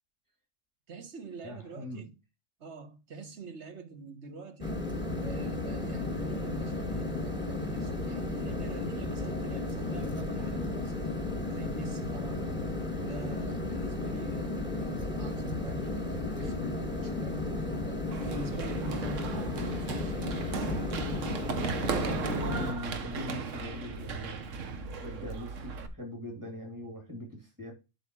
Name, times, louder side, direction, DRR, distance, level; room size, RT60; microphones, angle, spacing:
voice 1, 0.9-2.2 2.6-4.8 5.1-12.5 13.0-20.4, right 4 dB, 60° right, 1.5 m, -45 dB
voice 2, 1.4-2.1 8.4-8.6 21.9-24.5 24.9-27.7, equal, 15° right, 2.7 m, -41 dB
sound 1, 4.6-22.7, left 2 dB, 10° left, 1.3 m, -34 dB
Run, 18.1-25.9, right 5 dB, 75° right, 1.4 m, -37 dB
8.0 x 3.7 x 6.1 m
omnidirectional pair, 1.3 m